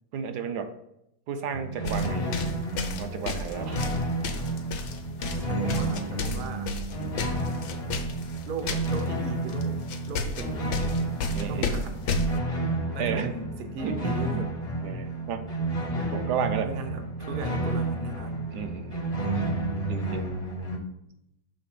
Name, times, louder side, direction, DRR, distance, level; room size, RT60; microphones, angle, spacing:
voice 1, 0.1-0.7 1.3-2.3 3.0-3.8 8.6-8.8 11.3-11.8 13.0-13.3 13.8-14.4 14.8-15.5 16.1-16.7 18.5-19.1 19.9-20.3, right 7 dB, 75° right, 8 dB, 1.1 m, -33 dB
sound 1, 1.5-20.8, right 2 dB, 35° left, 0.6 m, -31 dB
sound 2, 1.8-9.0 9.5-9.6 9.9-12.4, left 3 dB, 75° left, 1.4 m, -32 dB
voice 2, 5.4-6.8 8.5-9.8 10.1-10.7 11.4-12.1 12.9-14.5 16.6-18.4, right 3 dB, 60° right, 5 dB, 0.5 m, -37 dB
6.6 x 3.3 x 6.0 m, 0.80 s
omnidirectional pair, 1.9 m